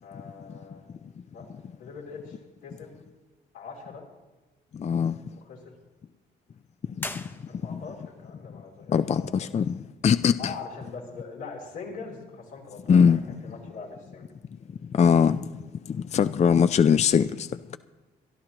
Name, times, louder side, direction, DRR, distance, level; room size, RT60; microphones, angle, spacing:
voice 1, 0.0-0.8 1.3-1.4 1.8-2.9 3.5-4.0 5.4-5.7 7.5-9.5 10.4-14.3, left 4 dB, 90° left, 3.2 m, -42 dB
voice 2, 4.7-5.2 7.0-7.3 7.7-7.8 8.9-9.8 10.0-10.5 12.9-13.2 14.8-17.8, left 7 dB, 35° left, 0.4 m, -22 dB
sound 1, 6.9-8.0, left 1 dB, 10° left, 0.8 m, -39 dB
25.5 x 11.5 x 3.0 m
supercardioid pair, 60°, 20 cm